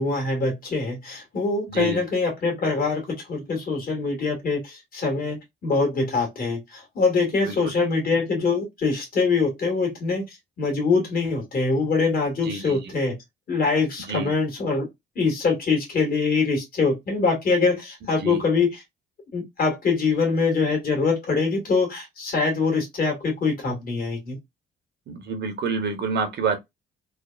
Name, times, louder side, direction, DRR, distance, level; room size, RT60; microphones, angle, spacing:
voice 1, 0.0-13.2 13.5-14.9 15.1-18.8 19.3-24.4, left 4 dB, 45° left, 1.6 m, -24 dB
voice 2, 12.5-12.8 14.1-14.3 18.2-18.4 25.1-26.6, right 4 dB, 60° right, 0.9 m, -27 dB
3.3 x 2.1 x 2.3 m
cardioid pair, 90°, 20 cm